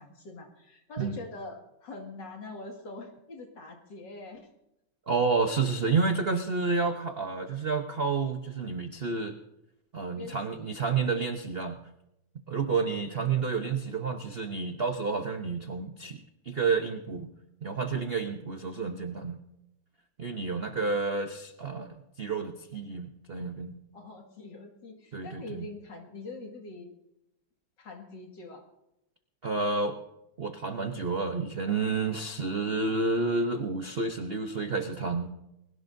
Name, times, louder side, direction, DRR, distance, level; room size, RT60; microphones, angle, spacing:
voice 1, 0.0-4.5 10.1-10.8 12.7-13.7 20.5-20.8 23.9-26.9 27.8-28.6, left 2 dB, 55° left, 2 dB, 2.6 m, -44 dB
voice 2, 5.1-9.3 9.9-11.8 12.5-17.3 17.6-19.4 20.2-23.8 25.1-25.7 29.4-30.0 30.4-35.3, right 4 dB, 60° right, 6 dB, 0.6 m, -30 dB
21.0 x 18.0 x 2.7 m, 0.86 s
omnidirectional pair, 2.4 m